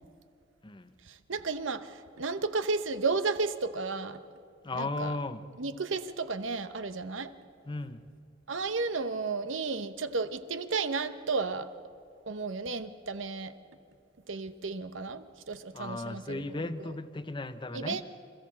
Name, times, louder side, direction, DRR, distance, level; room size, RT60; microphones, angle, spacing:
voice 1, 1.0-4.2 4.7-5.1 5.6-7.3 8.5-11.7 12.3-13.5 14.3-16.7 17.7-18.0, right 4 dB, 75° right, 0.9 m, -33 dB
voice 2, 4.6-5.4 7.7-8.0 15.7-18.0, left 2 dB, 25° left, 0.7 m, -36 dB
26.0 x 14.5 x 7.4 m
head